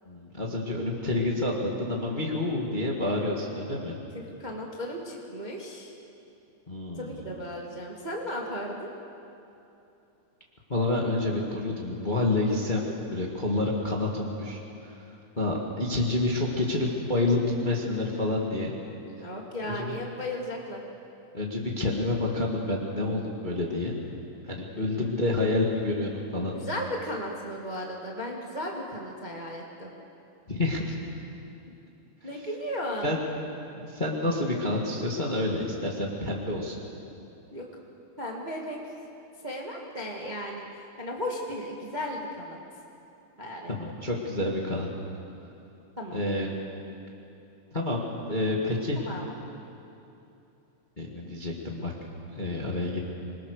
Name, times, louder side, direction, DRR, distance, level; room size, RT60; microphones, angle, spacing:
voice 1, 0.1-4.0 6.7-7.2 10.7-12.8 13.1-14.6 15.4-18.7 19.6-19.9 21.3-24.0 24.5-26.5 30.5-31.0 33.0-33.2 33.7-36.8 43.7-44.9 46.1-46.5 47.7-49.0 51.0-51.9 52.3-53.0, left 2 dB, 20° left, -2 dB, 1.7 m, -28 dB
voice 2, 4.1-5.9 6.9-8.9 12.7-12.9 19.2-20.8 24.7-25.1 26.5-29.9 32.2-33.2 37.5-37.7 38.2-38.8 39.4-42.6 43.4-43.7 46.0-46.2 48.9-49.3, equal, 20° right, -1 dB, 1.6 m, -35 dB
26.5 x 21.5 x 6.6 m, 2.8 s
omnidirectional pair, 3.6 m